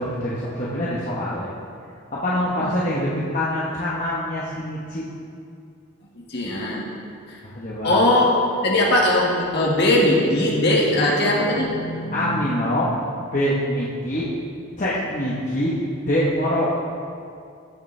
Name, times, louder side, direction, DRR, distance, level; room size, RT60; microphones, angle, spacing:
voice 1, 0.0-1.5 2.1-5.0 7.5-8.0 12.1-12.9 13.3-14.3 14.8-15.7 16.1-16.7, left 1 dB, 35° left, -7 dB, 1.0 m, -24 dB
voice 2, 6.3-6.8 7.3-7.4 7.8-8.3 8.6-12.5, left 1 dB, 50° left, -3 dB, 1.7 m, -20 dB
14.5 x 6.8 x 3.3 m, 2.4 s
head